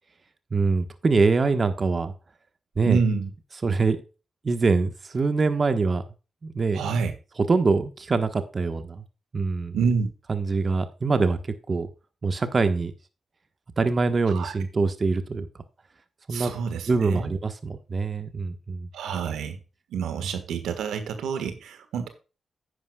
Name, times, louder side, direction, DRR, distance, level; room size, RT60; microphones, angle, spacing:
voice 1, 0.5-2.1 2.8-3.0 3.6-4.0 4.4-6.0 6.4-7.0 7.4-9.0 9.3-9.8 10.3-11.4 11.7-11.9 12.2-12.9 13.8-15.5 16.3-16.5 16.9-18.9, right 4 dB, 45° right, 9 dB, 1.2 m, -24 dB
voice 2, 2.8-3.3 6.7-7.1 9.7-10.1 14.3-14.5 16.3-17.3 18.9-19.6 19.9-22.1, right 5 dB, 85° right, 9 dB, 1.5 m, -27 dB
10.0 x 9.8 x 2.3 m, 0.31 s
supercardioid pair, 50°, 0 cm